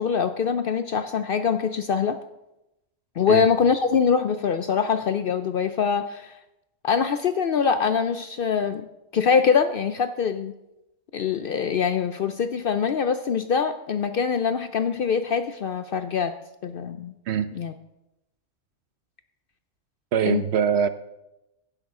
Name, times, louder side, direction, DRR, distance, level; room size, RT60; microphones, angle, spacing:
voice 1, 0.0-2.2 3.2-6.4 6.8-8.9 9.1-10.5 11.1-16.3 16.6-17.1 17.5-17.7 20.3-20.4, left 6 dB, 60° left, 10 dB, 0.6 m, -23 dB
voice 2, 20.1-20.9, right 8 dB, 65° right, 12 dB, 0.8 m, -23 dB
15.5 x 10.5 x 3.7 m, 0.93 s
omnidirectional pair, 1.3 m